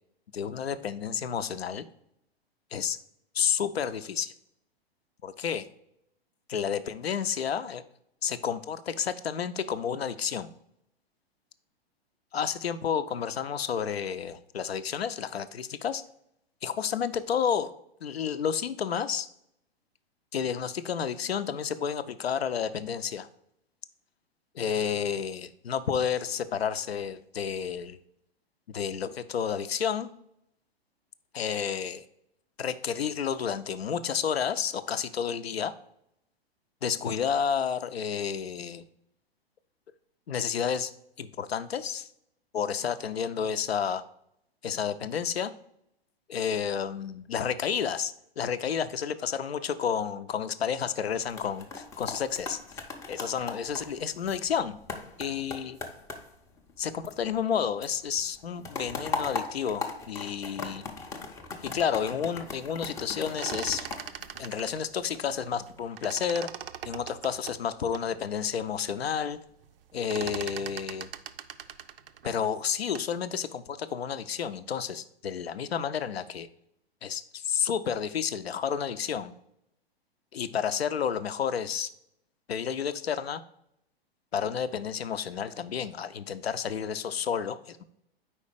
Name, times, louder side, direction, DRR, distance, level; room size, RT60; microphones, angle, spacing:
voice 1, 0.3-1.8 2.7-3.0 3.3-4.3 5.2-5.7 6.5-7.8 8.2-10.5 12.3-16.0 16.6-17.7 18.0-19.3 20.3-23.3 24.5-28.0 28.7-30.1 31.3-32.0 32.6-35.7 36.8-38.8 40.3-40.9 41.2-42.1 42.5-44.0 44.6-45.5 46.3-52.6 53.1-54.8 55.2-55.8 56.8-60.8 61.6-63.9 64.4-66.5 66.9-69.4 69.9-71.1 72.2-76.5 77.0-79.3 80.3-81.9 82.5-83.4 84.3-87.8, left 7 dB, 75° left, 13 dB, 0.5 m, -31 dB
sound 1, 51.1-57.5 57.8-65.0 65.5-65.8, left 3 dB, 10° left, 0.5 m, -39 dB
sound 2, 63.2-65.7 66.0-68.1 68.6-68.7 69.0-69.4 69.6-73.2, right 9 dB, 65° right, 0.5 m, -40 dB
4.9 x 4.3 x 4.9 m, 0.76 s
figure-of-eight pair, 110°, 31 cm